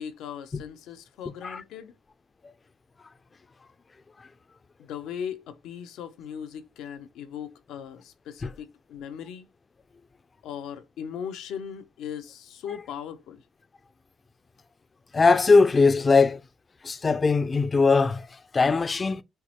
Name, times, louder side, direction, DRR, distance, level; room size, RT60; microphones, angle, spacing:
voice 1, 0.0-1.9 4.8-9.5 10.4-13.4, left 8 dB, 85° left, 0.6 m, -38 dB
voice 2, 15.1-16.4 16.8-19.2, left 4 dB, 30° left, 0.4 m, -20 dB
4.5 x 2.0 x 2.9 m
cardioid pair, 90°, 0 cm